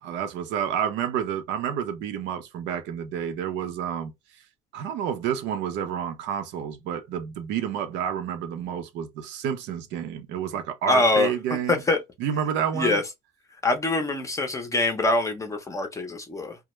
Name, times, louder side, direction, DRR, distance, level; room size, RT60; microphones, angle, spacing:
voice 1, 0.0-4.1 4.7-11.8 12.2-13.0, right 8 dB, 70° right, 0.6 m, -29 dB
voice 2, 10.9-11.3 11.7-12.0 12.7-13.0 13.6-16.6, left 2 dB, 15° left, 0.6 m, -24 dB
2.2 x 2.0 x 3.0 m
cardioid pair, 135°, 19 cm